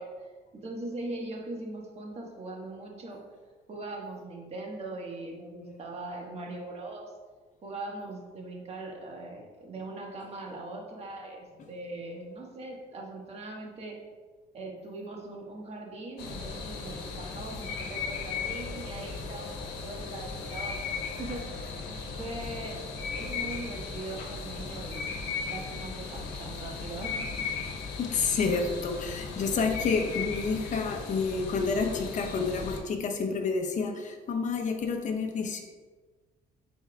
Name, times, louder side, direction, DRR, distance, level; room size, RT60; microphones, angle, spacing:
voice 1, 0.0-3.2 3.7-7.1 7.6-14.0 14.5-21.7 22.2-25.1 25.5-27.5, right 2 dB, 40° right, -1 dB, 1.5 m, -40 dB
sound 1, 16.2-32.8, left 5 dB, 85° left, 1.1 m, -37 dB
voice 2, 28.0-35.6, left 4 dB, 45° left, 4 dB, 0.9 m, -29 dB
9.8 x 4.5 x 2.4 m, 1.4 s
cardioid pair, 110°, 17 cm